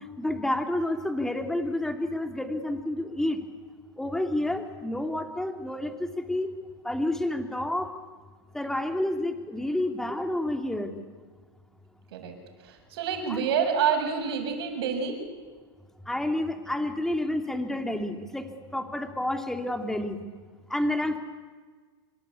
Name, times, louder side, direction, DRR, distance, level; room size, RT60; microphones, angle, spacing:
voice 1, 0.2-3.4 4.0-6.5 6.8-7.9 8.5-11.0 13.3-13.5 16.1-20.2 20.7-21.2, left 1 dB, 5° left, 6 dB, 2.7 m, -29 dB
voice 2, 12.6-15.2, right 7 dB, 70° right, 5 dB, 6.6 m, -27 dB
26.0 x 25.0 x 8.5 m, 1.5 s
supercardioid pair, 130°, 13 cm